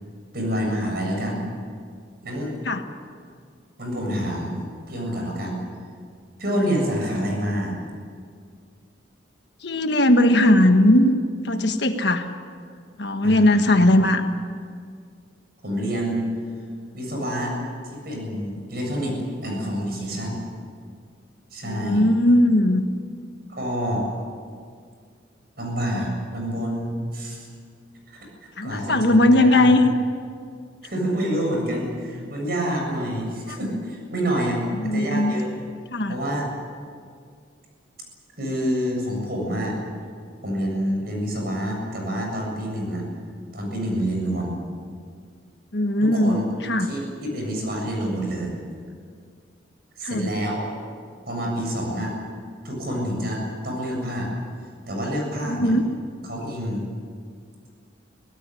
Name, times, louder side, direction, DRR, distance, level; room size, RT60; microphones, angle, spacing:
voice 1, 0.3-1.4 2.2-2.5 3.8-4.6 4.9-5.6 6.4-7.8 13.2-13.7 15.6-16.3 16.9-17.5 18.0-20.4 21.5-22.1 23.5-24.1 25.6-27.5 28.1-28.3 28.6-29.7 30.8-35.5 36.1-36.5 38.4-39.8 40.4-43.1 43.5-44.6 46.0-46.4 46.8-48.5 50.0-50.7 51.3-52.1 52.6-54.3 54.9-55.7 56.2-56.9, equal, 50° right, 0 dB, 7.4 m, -27 dB
voice 2, 9.6-11.2 11.4-12.3 13.0-14.2 21.6-22.8 28.6-29.9 33.5-33.6 34.7-35.3 35.9-36.2 45.7-46.4 46.6-46.9 50.0-50.3 55.5-55.8, left 1 dB, 60° left, 6 dB, 1.5 m, -18 dB
24.5 x 17.0 x 10.0 m, 2.1 s
head